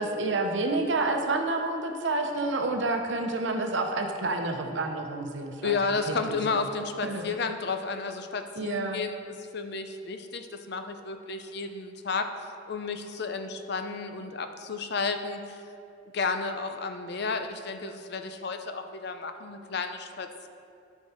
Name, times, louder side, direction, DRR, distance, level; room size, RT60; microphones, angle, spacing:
voice 1, 0.0-5.8 6.1-6.6 7.0-7.2 8.6-9.0, right 2 dB, 65° right, 4 dB, 0.7 m, -29 dB
voice 2, 5.6-15.6 16.1-20.5, left 4 dB, 55° left, 7 dB, 0.6 m, -32 dB
12.0 x 4.6 x 4.4 m, 2.7 s
head